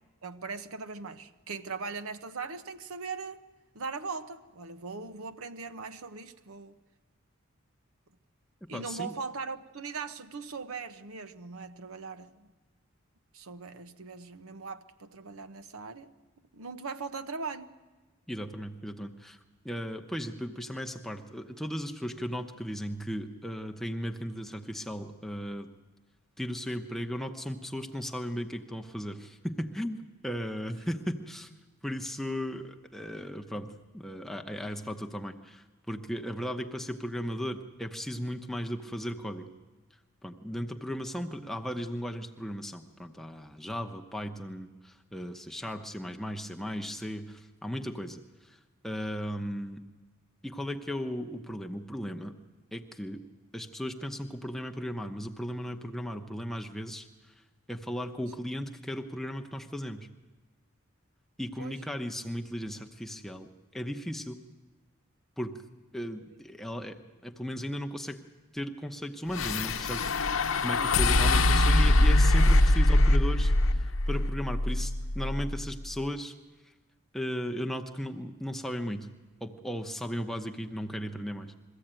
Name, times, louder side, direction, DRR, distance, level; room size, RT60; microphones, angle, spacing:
voice 1, 0.2-3.4 3.7-6.7 8.7-12.5 13.3-16.1 16.5-17.7 61.6-61.8 66.3-66.4 70.8-70.9, right 4 dB, 80° right, 0.9 m, -40 dB
voice 2, 8.6-9.1 18.3-19.4 19.6-25.7 26.4-30.0 30.2-31.5 31.8-39.5 40.2-48.6 48.8-49.8 50.4-52.4 52.7-53.2 53.5-57.1 57.7-60.1 61.4-64.4 65.4-65.6 65.9-68.2 68.5-70.4 70.6-76.3 77.1-79.1 79.4-81.5, equal, ahead, 0.8 m, -36 dB
sound 1, 69.3-75.7, left 1 dB, 65° left, 0.9 m, -23 dB
22.0 x 15.0 x 8.9 m
head